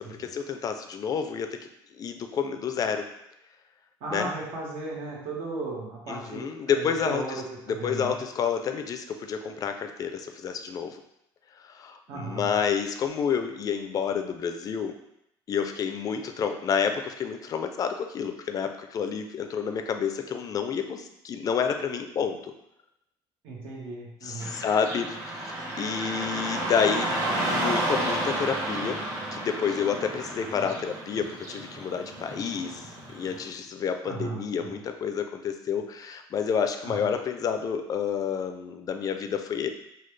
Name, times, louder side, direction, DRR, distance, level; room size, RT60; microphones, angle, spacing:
voice 1, 0.0-1.7 2.0-3.0 4.1-4.3 6.1-7.2 7.7-11.0 11.7-15.0 15.5-22.5 24.2-25.2 25.5-27.1 27.5-29.0 29.3-32.8 33.1-39.7, left 7 dB, 40° left, 7 dB, 0.4 m, -29 dB
voice 2, 4.0-8.2 12.1-12.5 23.4-24.6 30.4-30.9 34.0-34.8 36.8-37.1, right 3 dB, 80° right, -4 dB, 1.3 m, -36 dB
Car passing by / Traffic noise roadway noise, 24.4-33.4, right 1 dB, 35° right, 1.2 m, -32 dB
4.0 x 2.3 x 3.2 m, 0.81 s
cardioid pair, 120°, 9 cm